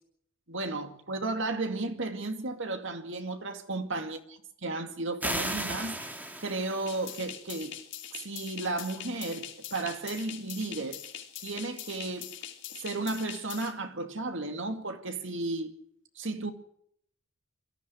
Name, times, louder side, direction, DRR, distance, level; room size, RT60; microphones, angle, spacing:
voice 1, 0.5-6.0 6.4-7.8 8.1-11.0 11.4-12.3 12.8-15.7 16.2-16.5, right 2 dB, 65° right, 2.3 m, -34 dB
sound 1, 5.2-7.2, right 1 dB, 10° right, 2.3 m, -35 dB
sound 2, 6.9-13.7, left 10 dB, 60° left, 3.4 m, -43 dB
23.0 x 14.5 x 9.3 m
head